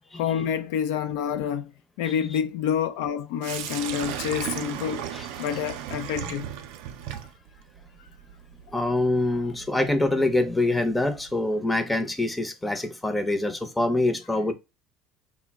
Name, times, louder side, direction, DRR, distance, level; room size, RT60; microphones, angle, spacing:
voice 1, 0.1-1.7 2.0-5.0 5.4-6.5 9.3-9.4, left 8 dB, 75° left, 0.3 m, -28 dB
Sink (filling or washing), 3.4-11.3, right 10 dB, 75° right, 0.4 m, -37 dB
voice 2, 8.7-14.5, left 2 dB, 10° left, 0.6 m, -25 dB
2.1 x 2.1 x 3.5 m
supercardioid pair, 90°, 0 cm